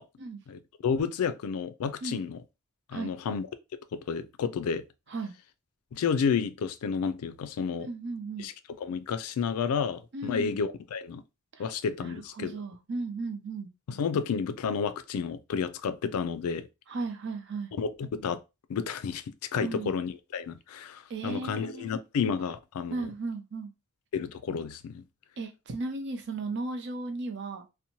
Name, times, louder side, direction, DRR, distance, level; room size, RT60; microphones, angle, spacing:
voice 1, 0.5-2.4 2.9-3.5 3.9-4.8 5.9-7.9 8.4-8.5 8.8-11.2 11.6-12.6 13.9-16.7 17.7-18.4 18.7-19.2 19.5-23.0 24.1-25.0, left 6 dB, 80° left, 0.3 m, -31 dB
voice 2, 7.8-8.5 10.1-10.6 11.6-11.7 12.0-13.7 16.9-17.7 19.6-19.9 21.1-22.0 22.9-23.7 25.4-27.7, right 3 dB, 50° right, 0.6 m, -35 dB
2.7 x 2.1 x 2.9 m
head